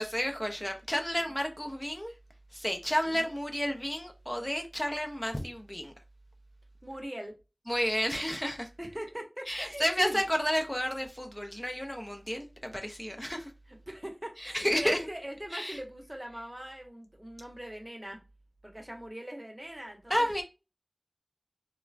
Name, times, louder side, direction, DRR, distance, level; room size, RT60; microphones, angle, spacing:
voice 1, 0.0-2.1 2.5-5.9 7.7-8.7 9.5-13.5 14.4-15.1 15.5-15.8 20.1-20.4, equal, 20° left, 0.4 m, -31 dB
voice 2, 6.8-7.3 8.8-10.2 13.7-18.2 18.6-20.1, right 1 dB, 30° right, 0.7 m, -41 dB
3.1 x 2.0 x 2.4 m
wide cardioid pair, 40°, 0 cm